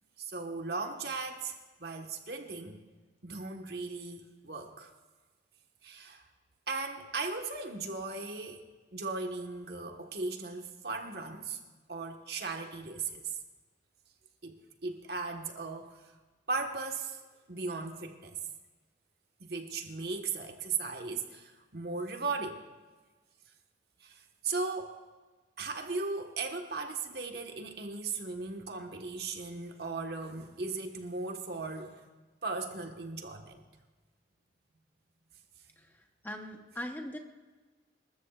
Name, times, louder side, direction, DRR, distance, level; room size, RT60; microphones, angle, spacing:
voice 1, 0.2-2.8 3.2-4.9 5.8-6.2 6.7-8.7 8.9-11.6 11.9-13.4 14.4-16.0 16.5-17.2 17.5-18.4 19.4-22.6 24.0-25.0 25.6-32.1 32.4-33.6, right 4 dB, 60° right, 3 dB, 1.4 m, -37 dB
voice 2, 35.8-37.2, left 1 dB, 10° left, 3 dB, 1.0 m, -41 dB
26.5 x 13.5 x 2.4 m, 1.3 s
head